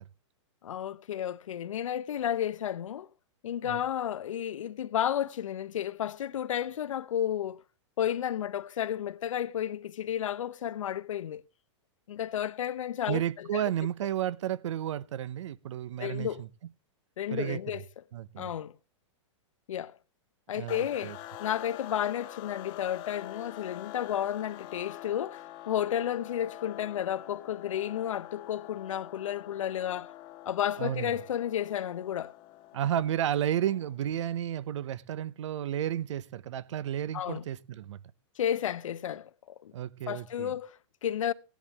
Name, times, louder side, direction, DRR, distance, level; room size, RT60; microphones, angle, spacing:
voice 1, 0.6-3.1 3.4-7.6 8.0-11.4 12.1-13.6 16.0-16.4 17.2-17.8 18.4-18.7 19.7-20.0 20.5-21.1 21.4-30.2 30.5-32.3 37.1-37.4 38.4-39.3 39.6-39.7 40.1-41.3, left 10 dB, 85° left, 0.7 m, -32 dB
voice 2, 13.1-16.5 17.3-17.6 18.1-18.5 20.5-21.2 30.8-31.1 32.7-38.0 39.7-40.5, right 11 dB, 70° right, 0.7 m, -32 dB
sound 1, 20.7-34.1, left 14 dB, 30° left, 1.2 m, -46 dB
15.5 x 10.5 x 3.5 m
hypercardioid pair, 155°, 16 cm